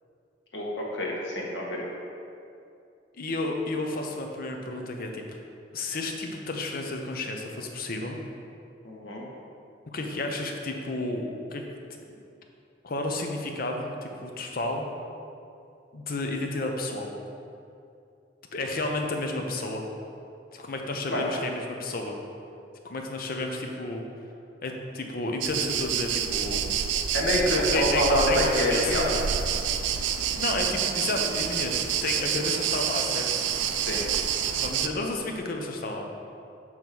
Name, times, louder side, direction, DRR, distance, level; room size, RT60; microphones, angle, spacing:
voice 1, 0.5-1.8 8.8-9.2 21.1-21.3 27.1-29.1 33.9-34.1, left 1 dB, 80° left, -3 dB, 1.3 m, -26 dB
voice 2, 3.2-5.2 5.7-8.2 9.9-11.6 12.8-14.9 15.9-17.1 18.5-19.9 20.5-22.1 22.8-24.0 24.6-26.7 27.7-29.0 30.3-31.7 32.0-33.5 34.6-36.1, left 2 dB, 50° left, 2 dB, 0.7 m, -31 dB
sound 1, 25.4-34.9, right 8 dB, 90° right, 0.4 m, -28 dB
7.1 x 3.2 x 5.9 m, 2.6 s
head